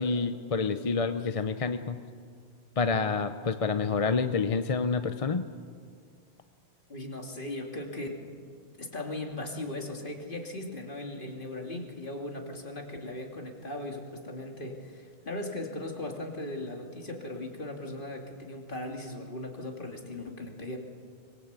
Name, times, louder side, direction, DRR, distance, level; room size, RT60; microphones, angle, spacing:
voice 1, 0.0-2.0 2.8-5.4, left 4 dB, 35° left, 9 dB, 0.7 m, -28 dB
voice 2, 6.9-8.2 8.8-20.8, left 1 dB, 50° left, 2 dB, 2.8 m, -38 dB
24.5 x 21.5 x 8.2 m, 2.1 s
omnidirectional pair, 1.1 m